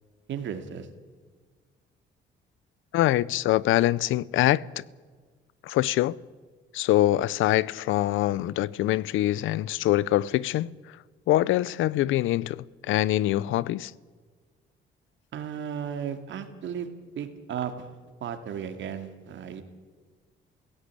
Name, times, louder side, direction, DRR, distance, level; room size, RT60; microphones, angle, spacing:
voice 1, 0.3-0.9 15.3-16.9 17.2-17.9 18.2-19.6, right 8 dB, 70° right, 2.6 m, -34 dB
voice 2, 2.9-4.8 5.6-6.2 6.7-10.7 11.3-13.9, left 15 dB, 85° left, 0.6 m, -24 dB
17.0 x 16.5 x 9.8 m
cardioid pair, 90°, 20 cm